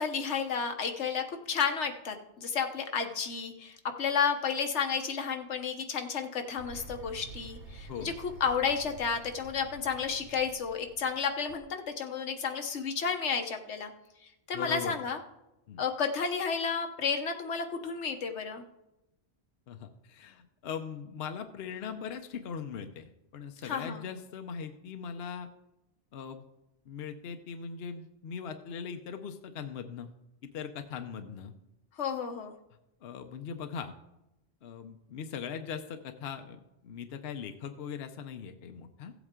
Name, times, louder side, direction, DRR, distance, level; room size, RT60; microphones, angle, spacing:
voice 1, 0.0-13.9 14.5-15.2 15.8-18.6 23.6-24.0 32.0-32.5, left 6 dB, 85° left, 5 dB, 1.3 m, -32 dB
sound 1, 6.6-11.6, right 4 dB, 85° right, 1.2 m, -48 dB
voice 2, 14.5-15.0 15.7-15.8 19.7-25.5 26.1-26.4 26.9-30.1 30.4-31.5 33.0-33.9 34.6-39.1, left 7 dB, 65° left, 7 dB, 0.9 m, -40 dB
15.5 x 8.1 x 3.7 m, 0.90 s
omnidirectional pair, 1.1 m